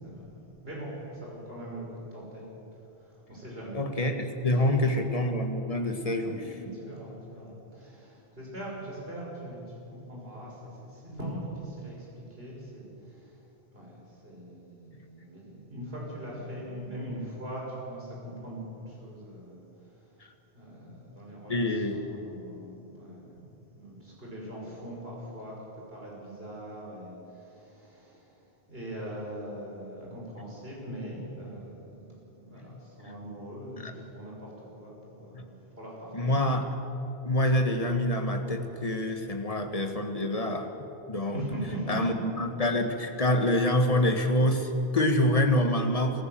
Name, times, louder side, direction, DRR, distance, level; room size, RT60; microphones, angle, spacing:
voice 1, 0.6-2.5 3.0-3.8 4.5-4.9 6.2-9.7 10.1-13.4 13.7-20.1 20.5-23.4 23.7-25.5 25.9-28.3 28.7-36.5 41.3-42.0, right 1 dB, 65° right, -4 dB, 6.0 m, -41 dB
voice 2, 3.7-6.4 21.5-22.0 32.7-32.8 33.8-33.9 35.3-35.4 36.1-36.6 37.2-40.7 41.1-41.4 41.9-46.2, left 1 dB, 35° left, 5 dB, 1.7 m, -26 dB
26.0 x 14.5 x 7.8 m, 2.9 s
omnidirectional pair, 1.1 m